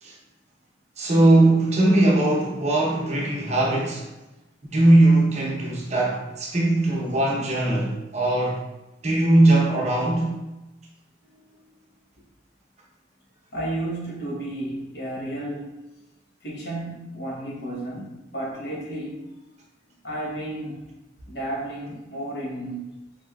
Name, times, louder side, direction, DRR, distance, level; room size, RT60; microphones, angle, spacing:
voice 1, 1.0-4.1 4.6-8.6 9.0-10.4, right 2 dB, 40° right, 0.7 m, -20 dB
voice 2, 11.2-11.8 13.5-15.8 16.4-19.2 20.0-20.8 21.3-22.9, right 1 dB, 65° left, 1.0 m, -33 dB
4.2 x 2.8 x 2.2 m
head